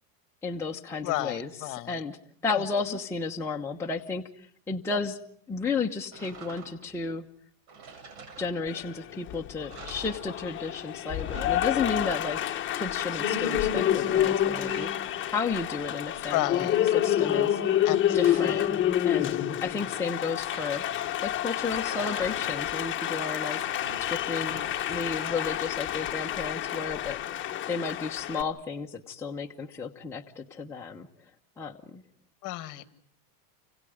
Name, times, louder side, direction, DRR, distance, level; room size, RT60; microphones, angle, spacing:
voice 1, 0.4-2.2 2.4-4.2 4.7-5.2 5.5-7.3 8.4-17.6 18.1-18.7 19.0-20.8 21.2-24.6 24.9-31.1 31.6-32.0, left 4 dB, 5° left, -1 dB, 1.1 m, -33 dB
voice 2, 1.0-2.0 16.3-16.8 17.8-18.6 32.4-32.9, left 17 dB, 40° left, 12 dB, 1.9 m, -32 dB
sound 1, 6.1-7.0 7.7-9.0 9.3-9.4 9.7-10.8 11.0-12.3 14.0-15.8 16.2-17.1 17.8-18.7 20.5-21.3 21.8-22.8 23.2-25.0, right 4 dB, 65° right, 7.6 m, -47 dB
Applause, 8.7-28.4, left 11 dB, 25° left, 1.7 m, -28 dB
30.0 x 26.0 x 5.1 m, 0.62 s
supercardioid pair, 150°, 49 cm